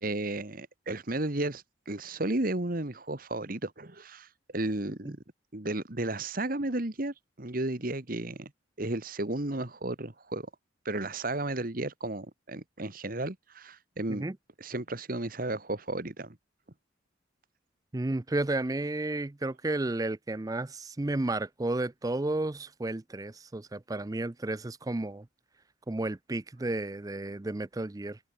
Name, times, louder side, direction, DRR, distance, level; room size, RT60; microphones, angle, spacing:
voice 1, 0.0-5.2 5.5-8.5 8.8-10.5 10.8-14.2 14.6-16.4, right 2 dB, 45° right, 1.6 m, -33 dB
voice 2, 17.9-25.3 25.9-28.2, right 2 dB, 20° right, 0.4 m, -32 dB
head